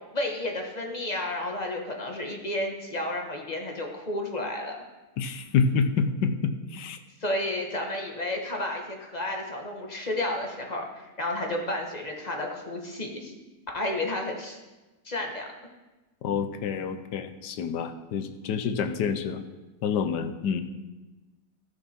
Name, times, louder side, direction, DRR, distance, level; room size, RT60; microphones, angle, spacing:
voice 1, 0.0-4.8 7.2-13.3 13.7-14.6 15.0-15.5, left 1 dB, 25° left, 1 dB, 1.4 m, -31 dB
voice 2, 5.2-7.0 16.2-19.4 19.8-20.6, left 6 dB, 85° left, 9 dB, 1.4 m, -27 dB
13.5 x 6.9 x 4.5 m, 1.1 s
omnidirectional pair, 1.7 m